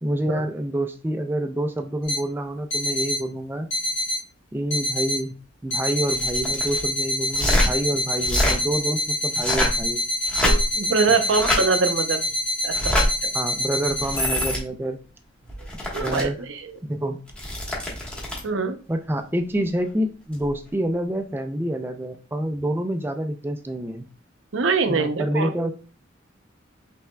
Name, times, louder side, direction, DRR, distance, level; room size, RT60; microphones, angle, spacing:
voice 1, 0.0-3.7 4.5-5.3 5.6-10.0 13.3-15.0 15.9-16.4 16.8-17.2 18.9-24.0 24.9-25.7, right 1 dB, 10° right, 6 dB, 0.4 m, -27 dB
sound 1, 2.0-2.2 2.7-3.2 3.7-4.2 4.7-5.2 5.7-14.5, left 1 dB, 70° left, 2.0 m, -25 dB
sound 2, 6.1-6.8 7.3-7.7 8.2-8.6 9.3-9.8 10.2-10.8 11.3-11.6 12.7-13.1 13.9-14.6 15.5-16.2 17.3-18.5 20.3-20.5, left 1 dB, 5° left, 1.2 m, -25 dB
voice 2, 10.4-12.2 12.6-12.9 13.2-13.3 15.6-15.7 15.9-16.8 18.4-18.8 24.5-25.5, right 4 dB, 80° right, 8 dB, 0.6 m, -23 dB
5.6 x 3.4 x 2.2 m, 0.35 s
head